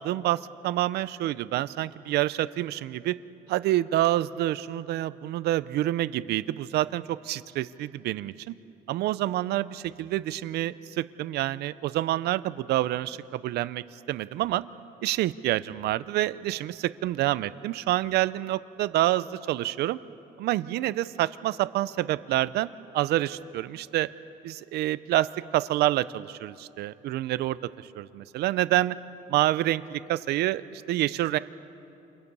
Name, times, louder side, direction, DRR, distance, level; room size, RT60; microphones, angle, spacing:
voice 1, 0.0-3.1 3.5-8.5 8.9-14.6 15.0-20.0 20.4-24.1 24.4-29.0 29.3-31.4, right 15 dB, 75° right, 15 dB, 0.6 m, -27 dB
29.0 x 27.5 x 5.5 m, 2.8 s
cardioid pair, 110°, 17 cm